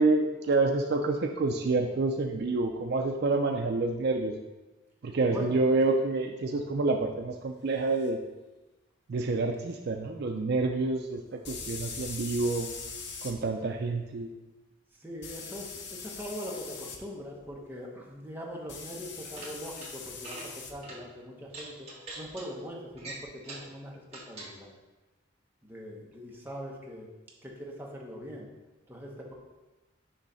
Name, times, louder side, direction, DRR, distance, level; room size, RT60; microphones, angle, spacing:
voice 1, 0.0-4.3 5.0-8.2 9.1-12.7 13.2-14.3, right 3 dB, 55° right, 3 dB, 0.4 m, -28 dB
voice 2, 5.3-5.6 14.9-21.9 22.1-24.7 25.6-27.1 27.4-28.5 28.9-29.3, equal, 10° right, -2 dB, 1.0 m, -42 dB
sound 1, 8.0-8.1 11.4-13.3 15.2-17.0 18.7-20.7, left 5 dB, 60° left, 0.8 m, -41 dB
sound 2, 19.1-19.9 20.2-20.5 20.8-21.0 21.5-22.4 23.0-23.7 24.1-24.5, right 2 dB, 30° right, 1.8 m, -43 dB
6.4 x 3.2 x 5.5 m, 1.1 s
head